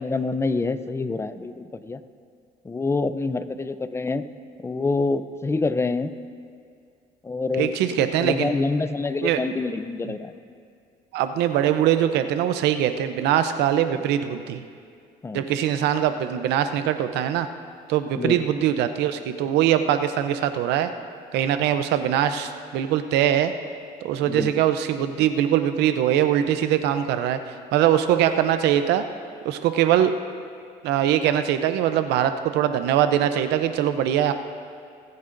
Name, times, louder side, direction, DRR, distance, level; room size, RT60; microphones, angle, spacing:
voice 1, 0.0-2.0 2.6-4.2 4.6-6.1 7.2-10.3 15.2-15.5 18.2-18.4 24.2-24.5, left 3 dB, 15° left, 11 dB, 0.5 m, -26 dB
voice 2, 7.6-8.5 9.2-9.4 10.1-10.2 11.1-14.6 15.3-17.5 17.9-20.9 21.3-23.5 24.0-27.4 27.7-29.0 29.4-30.1 30.8-34.3, right 10 dB, 85° right, 9 dB, 0.7 m, -22 dB
26.5 x 9.5 x 2.6 m, 2.2 s
cardioid pair, 110°, 17 cm